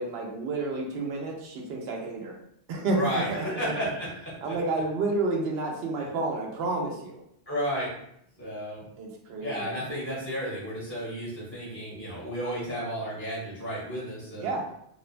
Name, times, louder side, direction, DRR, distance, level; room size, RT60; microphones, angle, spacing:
voice 1, 0.0-2.4 2.7-3.7 4.4-7.2 9.0-9.7 14.4-14.6, right 2 dB, 70° right, 0 dB, 0.8 m, -30 dB
voice 2, 2.9-4.5 6.0-6.1 7.5-7.9 8.4-8.9 9.4-14.5, equal, 15° left, -7 dB, 0.7 m, -33 dB
2.8 x 2.1 x 2.5 m, 0.75 s
omnidirectional pair, 1.1 m